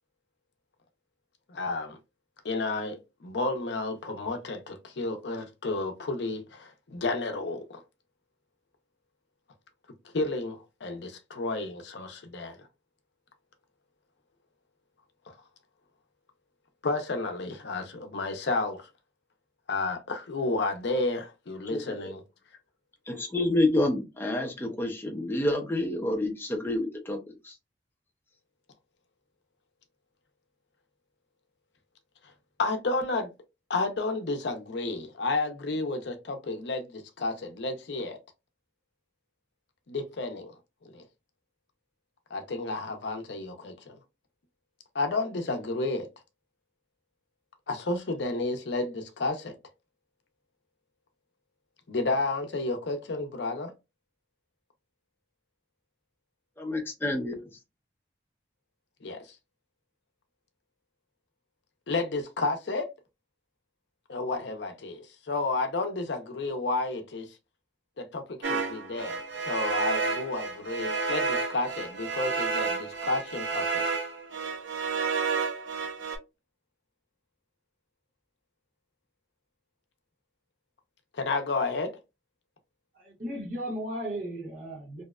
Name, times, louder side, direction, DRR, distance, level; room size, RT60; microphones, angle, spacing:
voice 1, 1.5-2.0 2.4-7.8 10.1-12.7 16.8-18.9 19.7-22.2 32.6-33.3 33.7-38.2 39.9-40.5 40.8-41.0 42.3-44.0 44.9-46.1 47.7-49.6 51.9-53.7 59.0-59.4 61.9-62.9 64.1-67.3 68.0-73.9 81.1-82.0, left 3 dB, 65° left, 0.5 m, -31 dB
voice 2, 21.7-22.1 23.1-27.5 56.6-57.5, left 1 dB, 10° left, 0.5 m, -28 dB
sound 1, 68.4-76.2, right 4 dB, 85° right, 0.6 m, -31 dB
voice 3, 82.9-85.0, right 1 dB, 45° right, 1.0 m, -35 dB
2.7 x 2.1 x 2.3 m
head